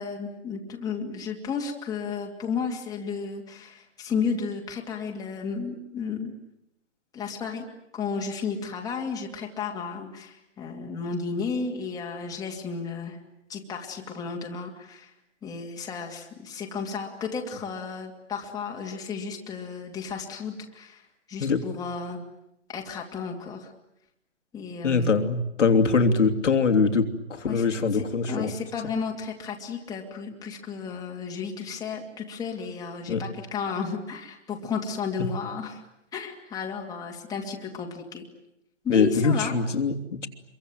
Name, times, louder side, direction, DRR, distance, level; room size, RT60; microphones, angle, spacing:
voice 1, 0.0-6.3 7.1-7.7 7.9-13.2 13.5-15.1 15.4-21.0 21.3-22.2 22.7-23.7 24.5-25.1 27.5-27.7 27.9-35.8 36.1-38.3 38.8-39.6, left 5 dB, 10° left, 0 dB, 2.5 m, -33 dB
voice 2, 24.8-28.5 33.1-33.2 38.9-40.3, left 4 dB, 75° left, 5 dB, 3.1 m, -23 dB
26.0 x 23.5 x 9.3 m, 0.81 s
hypercardioid pair, 145°, 36 cm